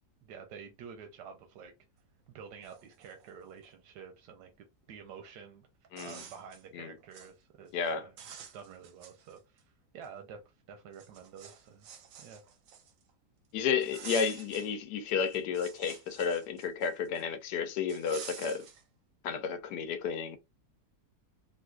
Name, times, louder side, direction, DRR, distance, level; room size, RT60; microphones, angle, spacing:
voice 1, 0.2-1.7 2.3-5.7 6.0-7.7 8.0-8.1 8.5-11.9 12.2-12.4, right 6 dB, 85° right, 1.2 m, -49 dB
sound 1, 2.3-2.4 2.6-3.7 5.2-5.3 5.8-6.6 7.0-7.3 7.7-7.9 8.2-9.6 10.0-10.1 10.9-13.1 13.8-14.7 15.1-17.2 17.9-18.8, right 7 dB, 65° right, 0.9 m, -48 dB
voice 2, 5.9-6.2 6.7-6.9 7.7-8.1 13.5-18.6 19.2-20.4, left 6 dB, 80° left, 1.2 m, -32 dB
3.9 x 2.4 x 2.3 m
omnidirectional pair, 1.8 m